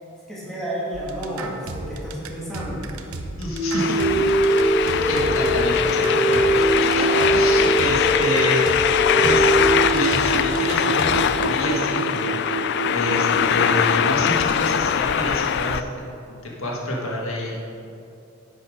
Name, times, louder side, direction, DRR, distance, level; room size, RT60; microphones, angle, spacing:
voice 1, 0.3-2.9, right 1 dB, ahead, -8 dB, 2.8 m, -31 dB
sound 1, 0.9-11.5, right 2 dB, 85° right, 0.9 m, -33 dB
voice 2, 3.4-4.2 5.1-8.9 9.2-9.6 9.9-12.3 12.9-15.8 16.3-17.6, left 1 dB, 75° left, -2 dB, 1.7 m, -28 dB
sound 2, 3.5-13.5, right 1 dB, 25° left, 1.8 m, -22 dB
sound 3, 3.8-15.8, left 8 dB, 55° left, 0.3 m, -22 dB
10.5 x 8.5 x 5.0 m, 2.6 s
head